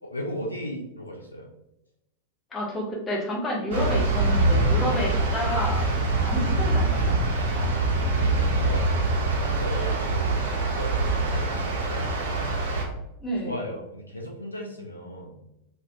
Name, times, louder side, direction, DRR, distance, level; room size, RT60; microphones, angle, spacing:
voice 1, 0.0-1.5 8.1-12.6 13.4-15.4, equal, 80° left, 1 dB, 0.3 m, -37 dB
voice 2, 2.5-5.9 6.2-7.5 13.2-13.6, equal, 20° left, -3 dB, 0.7 m, -30 dB
sound 1, 3.7-12.9, right 2 dB, 60° right, 0.5 m, -24 dB
2.3 x 2.2 x 2.7 m, 0.85 s
figure-of-eight pair, 90°, 0 cm